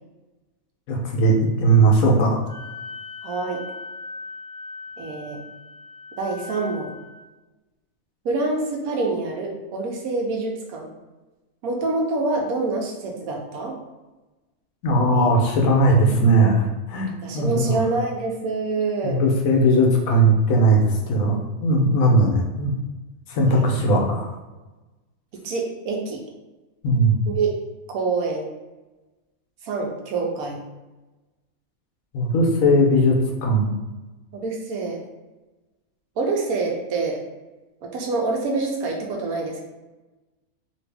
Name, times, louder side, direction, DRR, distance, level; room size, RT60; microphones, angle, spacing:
voice 1, 0.9-2.4 14.8-17.8 19.0-22.8 23.3-24.3 26.8-27.2 32.1-33.2 33.4-33.7, right 1 dB, 75° left, 0 dB, 1.1 m, -18 dB
Wind instrument woodwind instrument, 2.4-7.1, left 4 dB, 50° right, 0.4 m, -39 dB
voice 2, 3.2-3.6 5.0-5.4 6.2-7.0 8.2-10.9 11.6-13.8 15.1-15.3 17.2-19.2 23.5-23.7 25.4-26.2 27.3-27.5 27.9-28.5 29.6-30.6 34.3-35.0 36.2-37.2 37.8-39.6, right 3 dB, 85° right, 0 dB, 1.1 m, -26 dB
2.8 x 2.6 x 3.3 m, 1.1 s
omnidirectional pair, 1.5 m